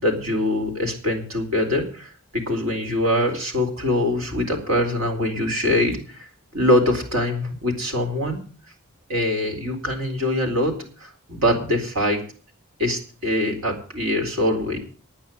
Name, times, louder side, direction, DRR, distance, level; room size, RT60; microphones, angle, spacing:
voice 1, 0.0-8.4 9.1-12.2 12.8-14.8, left 1 dB, 75° right, 3 dB, 4.1 m, -23 dB
10.5 x 9.3 x 7.9 m, 0.41 s
head